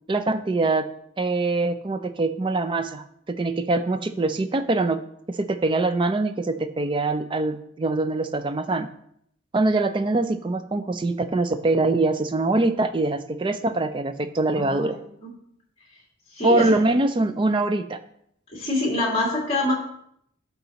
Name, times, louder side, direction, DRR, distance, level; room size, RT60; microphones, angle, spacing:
voice 1, 0.1-0.9 1.2-5.0 5.4-8.9 9.5-15.0 16.4-18.0, right 2 dB, 25° right, 9 dB, 0.4 m, -23 dB
voice 2, 14.5-14.9 15.2-15.3 16.3-16.8 18.5-19.7, left 1 dB, 30° left, -3 dB, 2.1 m, -25 dB
12.0 x 4.0 x 2.9 m, 0.70 s
head